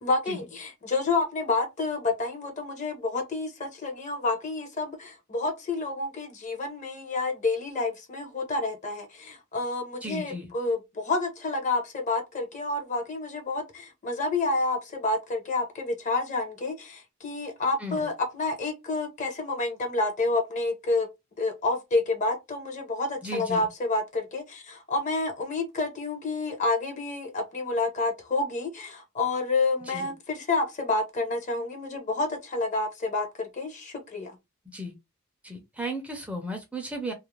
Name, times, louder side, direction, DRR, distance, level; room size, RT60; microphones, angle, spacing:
voice 1, 0.0-21.1 21.4-34.3, left 3 dB, 35° left, 0.6 m, -29 dB
voice 2, 10.0-10.5 17.8-18.1 23.2-23.7 29.8-30.1 34.7-34.9 35.4-37.1, equal, 5° right, 0.4 m, -35 dB
2.4 x 2.0 x 3.0 m
head